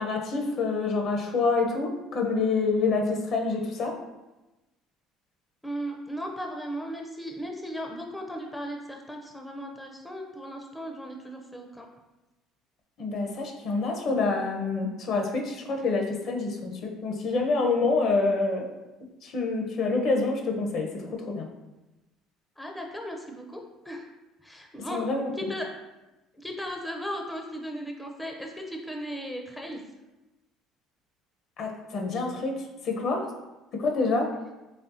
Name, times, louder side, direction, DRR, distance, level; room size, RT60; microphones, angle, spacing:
voice 1, 0.0-4.0 13.0-18.6 19.2-21.5 24.9-25.5 31.6-32.6 32.8-33.3 33.8-34.3, left 3 dB, 60° left, 2 dB, 0.8 m, -27 dB
voice 2, 5.6-11.9 22.6-24.1 24.4-25.1 25.3-25.7 26.4-29.8, equal, 5° left, 2 dB, 0.5 m, -36 dB
4.2 x 3.3 x 2.7 m, 1.0 s
supercardioid pair, 90°, 0 cm